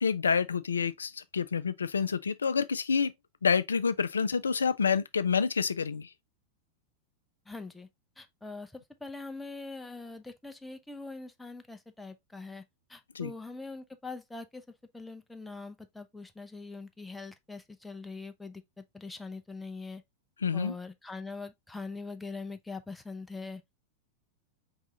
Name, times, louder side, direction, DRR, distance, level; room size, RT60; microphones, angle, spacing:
voice 1, 0.0-3.1 3.4-6.1 13.1-13.3 20.4-20.7, left 6 dB, 70° left, 0.4 m, -28 dB
voice 2, 7.5-7.9 8.2-12.6 12.9-14.6 14.9-18.6 18.9-20.0 20.5-23.6, left 3 dB, 5° left, 0.6 m, -42 dB
4.8 x 3.6 x 3.0 m
figure-of-eight pair, 90°, 0 cm